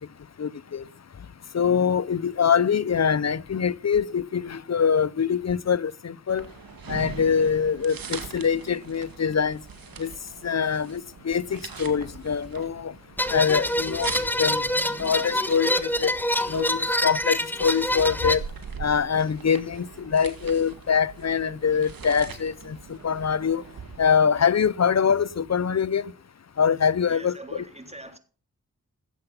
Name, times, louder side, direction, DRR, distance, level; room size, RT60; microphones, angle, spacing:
voice 1, 0.4-0.8 1.5-6.4 6.9-9.6 10.0-10.1 10.4-12.9 13.3-14.1 14.4-14.6 15.0-15.7 16.0-16.1 16.5-18.4 18.8-22.8 23.0-23.6 24.0-26.0 26.6-27.6, left 7 dB, 50° left, 0.7 m, -24 dB
sound 1, 6.3-24.1, right 6 dB, 85° right, 2.0 m, -42 dB
sound 2, 13.2-18.4, left 1 dB, 5° left, 1.6 m, -26 dB
voice 2, 27.1-28.2, right 2 dB, 20° right, 3.6 m, -42 dB
18.0 x 8.0 x 5.4 m
cardioid pair, 40°, 34 cm